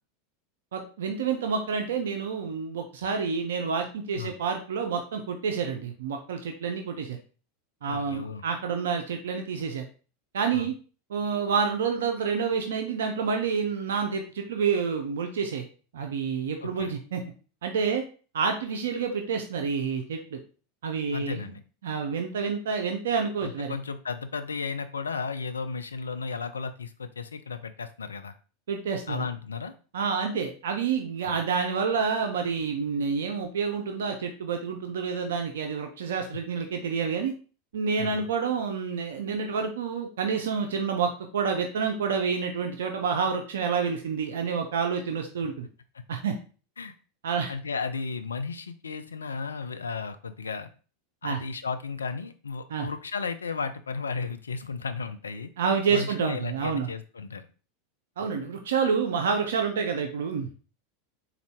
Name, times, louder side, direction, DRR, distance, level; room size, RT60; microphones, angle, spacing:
voice 1, 0.7-7.2 7.8-9.8 10.3-10.7 11.1-15.6 15.9-17.2 17.6-18.0 18.3-20.4 20.8-21.5 21.8-23.8 28.7-29.3 29.9-37.3 37.7-45.7 46.1-46.3 47.2-47.5 51.2-51.4 52.7-52.9 55.6-56.9 58.2-60.5, right 6 dB, 65° right, 4 dB, 0.5 m, -28 dB
voice 2, 7.9-8.4 10.5-10.7 16.6-16.9 21.1-21.6 23.4-28.3 29.1-29.7 31.2-31.4 38.0-38.3 46.8-46.9 47.5-50.7 51.2-55.5 55.9-57.5, left 5 dB, 75° left, 9 dB, 0.3 m, -34 dB
3.9 x 2.4 x 3.3 m, 0.37 s
figure-of-eight pair, 85°, 0 cm